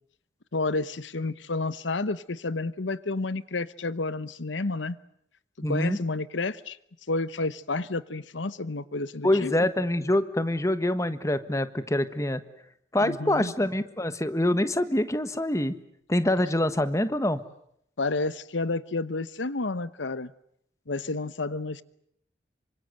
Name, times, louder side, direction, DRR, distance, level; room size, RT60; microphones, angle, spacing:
voice 1, 0.5-5.0 5.7-6.8 7.1-9.5 13.0-13.5 18.0-20.3 20.9-21.8, left 3 dB, 85° left, 1.0 m, -30 dB
voice 2, 5.6-6.0 9.2-12.4 12.9-15.8 16.1-17.4, left 1 dB, 15° left, 1.4 m, -25 dB
27.5 x 25.0 x 7.8 m
head